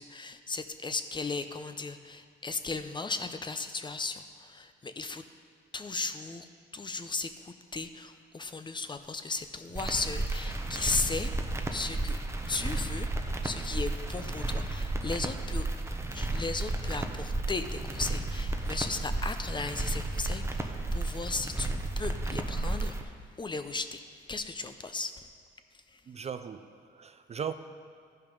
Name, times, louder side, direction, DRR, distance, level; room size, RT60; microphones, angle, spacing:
voice 1, 0.0-5.2 5.7-6.5 6.7-11.3 11.7-12.2 12.5-15.7 16.1-24.0 24.3-25.1 25.9-26.0, left 3 dB, 25° left, 9 dB, 0.6 m, -36 dB
sound 1, 9.8-23.0, right 2 dB, 15° right, 0.8 m, -33 dB
voice 2, 26.1-27.5, right 7 dB, 35° right, 10 dB, 0.4 m, -38 dB
13.5 x 5.6 x 5.2 m, 2.1 s
cardioid pair, 90°, 20 cm